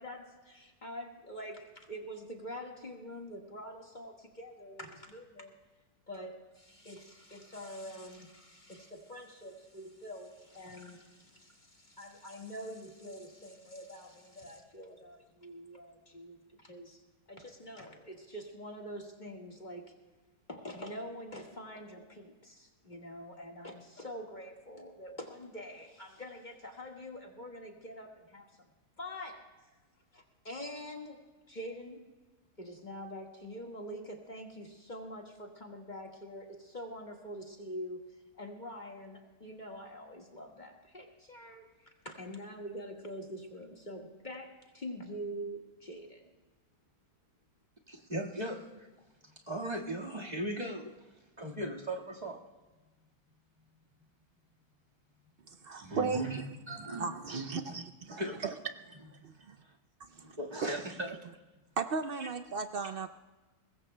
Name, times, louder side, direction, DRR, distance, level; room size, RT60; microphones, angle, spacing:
voice 1, 0.0-5.5 6.1-17.0 17.3-19.9 20.5-28.5 29.0-29.4 30.1-31.2 31.5-32.0 32.6-38.0 38.4-46.2, equal, 30° left, 1 dB, 1.7 m, -45 dB
voice 2, 47.9-48.9 49.2-52.4 55.7-57.8 58.1-58.5 59.4-59.8 60.2-61.2 62.2-62.3, right 1 dB, 25° right, -2 dB, 1.8 m, -38 dB
voice 3, 55.6-56.2 56.9-58.2 59.2-59.6 60.1-60.4 60.6-60.7 61.8-63.1, right 4 dB, 85° right, 9 dB, 0.5 m, -36 dB
23.0 x 20.5 x 2.2 m, 1.2 s
omnidirectional pair, 1.7 m